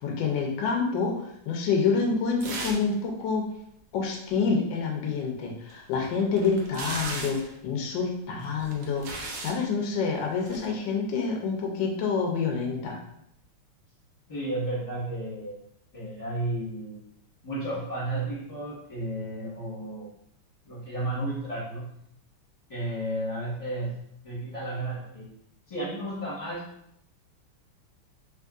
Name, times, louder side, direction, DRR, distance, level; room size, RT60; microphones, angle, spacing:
voice 1, 0.0-1.1 1.5-3.4 3.9-13.0, left 5 dB, 75° left, 1 dB, 1.1 m, -27 dB
sound 1, 2.4-2.9 3.2-3.3 5.7-7.5 8.4-9.6 10.4-10.7, right 3 dB, 80° right, 0.9 m, -37 dB
voice 2, 14.3-15.5 15.9-17.0 17.4-20.1 20.7-21.9 22.7-24.0 24.2-25.3 25.7-26.6, right 1 dB, 25° left, -10 dB, 1.0 m, -32 dB
3.5 x 2.9 x 2.4 m, 0.74 s
omnidirectional pair, 2.4 m